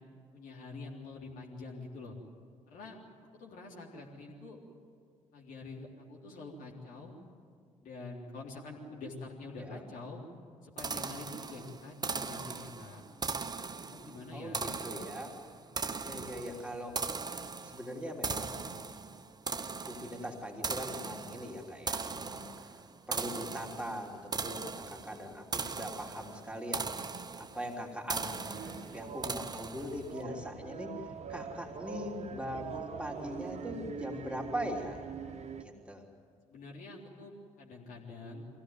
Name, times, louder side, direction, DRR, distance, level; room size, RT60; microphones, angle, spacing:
voice 1, 0.3-2.2 2.7-3.0 3.3-4.6 5.3-7.1 7.8-10.2 10.6-13.0 13.7-14.6 36.5-38.5, left 3 dB, 55° left, -2 dB, 3.7 m, -46 dB
sound 1, 10.8-30.2, right 4 dB, 25° right, 0.9 m, -39 dB
voice 2, 14.3-15.4 16.0-17.0 17.6-18.8 19.8-31.0 31.3-35.0 35.6-36.1, equal, 5° right, 0 dB, 3.3 m, -41 dB
sound 2, 28.5-35.6, right 6 dB, 40° right, 1.3 m, -43 dB
23.5 x 16.5 x 9.4 m, 2.2 s
figure-of-eight pair, 45°, 17 cm